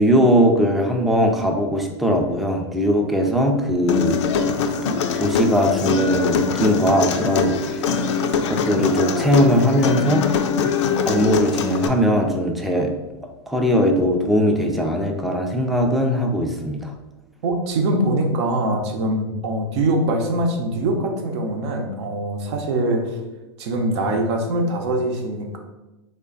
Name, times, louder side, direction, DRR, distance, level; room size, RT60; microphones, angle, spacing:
voice 1, 0.0-4.2 4.6-8.1 8.5-10.7 11.1-12.9 13.5-16.9, equal, ahead, 2 dB, 0.4 m, -20 dB
Human voice, 3.9-11.9, left 6 dB, 75° left, 0.4 m, -22 dB
voice 2, 17.4-23.2 23.6-25.6, right 1 dB, 65° right, 3 dB, 0.7 m, -23 dB
3.3 x 2.2 x 3.8 m, 1.1 s
hypercardioid pair, 120°, 15 cm